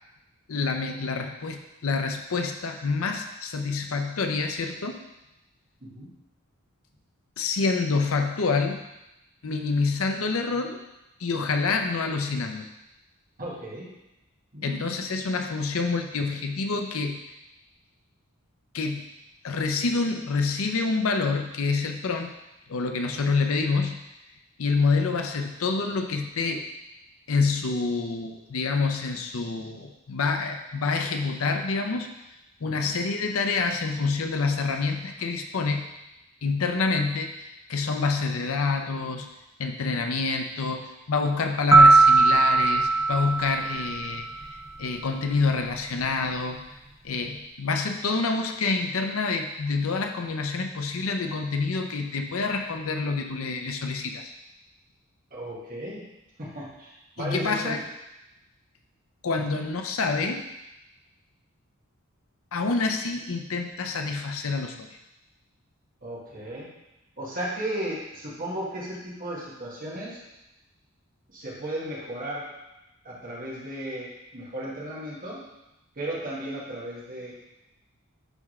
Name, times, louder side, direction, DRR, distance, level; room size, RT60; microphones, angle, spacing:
voice 1, 0.5-5.0 7.4-8.8 9.4-10.8 11.2-12.7 14.6-17.2 18.7-19.0 19.4-22.3 22.7-24.0 24.6-26.6 27.3-32.1 32.6-35.9 36.4-39.3 39.6-46.6 47.0-54.3 57.2-57.8 59.2-60.4 62.5-64.9, left 4 dB, 75° left, 5 dB, 0.6 m, -27 dB
voice 2, 13.4-13.9 14.5-14.8 32.6-32.9 55.3-56.0 56.4-57.8 59.4-59.6 66.0-66.7 67.2-70.2 71.3-72.4 73.0-75.4 76.0-77.3, right 1 dB, 40° right, -5 dB, 1.8 m, -35 dB
sound 1, 41.7-44.5, right 3 dB, 10° right, 0.4 m, -18 dB
10.5 x 3.6 x 3.2 m, 0.93 s
head